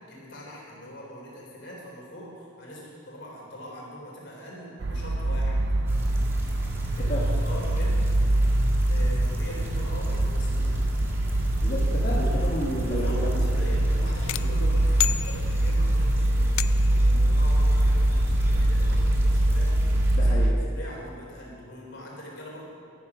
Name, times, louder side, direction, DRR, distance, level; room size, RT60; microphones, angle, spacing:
voice 1, 0.1-5.6 6.9-8.2 8.9-10.8 12.8-16.6 16.9-22.6, equal, 55° left, -3 dB, 3.9 m, -42 dB
sound 1, 4.8-20.5, right 1 dB, 55° right, 0.5 m, -24 dB
sound 2, 5.9-20.2, equal, 10° right, 1.6 m, -34 dB
voice 2, 7.0-7.4 11.6-13.4 14.0-14.1 14.4-14.7 20.1-20.7, equal, 35° left, -6 dB, 1.6 m, -32 dB
sound 3, 14.3-15.9 16.6-17.1, left 15 dB, 80° left, 0.3 m, -31 dB
13.0 x 11.5 x 6.1 m, 2.5 s
head